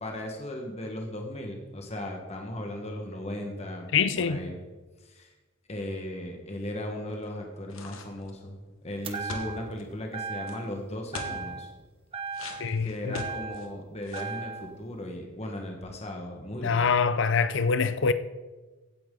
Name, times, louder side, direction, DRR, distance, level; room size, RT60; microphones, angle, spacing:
voice 1, 0.0-3.9 4.2-4.6 5.0-5.3 5.7-8.6 8.8-11.7 12.8-16.9, left 1 dB, 30° left, 1.5 m, -37 dB
voice 2, 3.9-4.4 12.6-13.2 16.6-18.1, left 5 dB, 60° left, 0.6 m, -25 dB
sound 1, 7.7-8.4 9.3-9.8 10.4-10.6 11.1-11.4 12.3-13.7 14.0-14.4, left 3 dB, 75° left, 1.4 m, -40 dB
sound 2, 9.0-9.8 10.1-10.8 11.1-11.8 12.1-13.8 14.1-14.8, right 5 dB, 25° right, 1.0 m, -37 dB
16.0 x 8.9 x 3.9 m
head